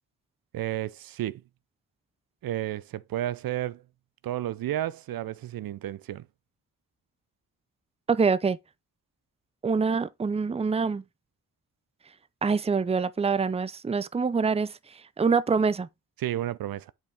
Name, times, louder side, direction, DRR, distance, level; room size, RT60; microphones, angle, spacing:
voice 1, 0.5-1.4 2.4-3.8 4.2-6.2 16.2-16.9, right 13 dB, 70° right, 0.5 m, -32 dB
voice 2, 8.1-8.6 9.6-11.0 12.4-14.7 15.2-15.9, right 5 dB, 15° right, 0.5 m, -25 dB
8.0 x 4.4 x 3.4 m
cardioid pair, 55°, 37 cm